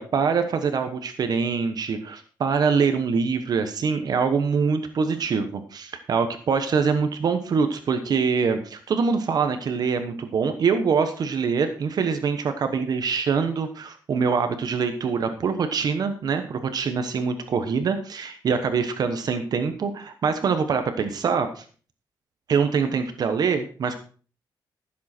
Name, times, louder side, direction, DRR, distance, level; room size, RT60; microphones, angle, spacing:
voice 1, 0.0-21.6 22.5-24.0, right 5 dB, 50° right, 8 dB, 1.1 m, -24 dB
15.0 x 7.6 x 4.4 m, 0.41 s
wide cardioid pair, 150°, 8 cm